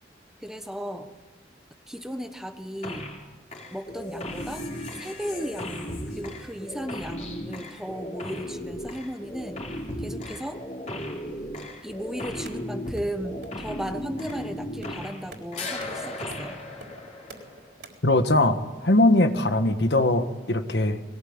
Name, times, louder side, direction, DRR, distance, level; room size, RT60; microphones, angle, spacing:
voice 1, 0.4-1.1 1.9-3.0 3.7-4.6 5.0-9.6 10.0-10.6 11.8-16.6, equal, 5° right, 7 dB, 1.1 m, -35 dB
sound 1, 2.8-3.2 3.5-15.3 15.5-17.7, left 1 dB, 40° left, 4.0 m, -36 dB
sound 2, 12.5-17.9, right 2 dB, 65° right, 4.1 m, -45 dB
voice 2, 18.0-21.0, left 1 dB, 70° left, 8 dB, 1.5 m, -21 dB
21.5 x 18.5 x 8.8 m, 1.2 s
head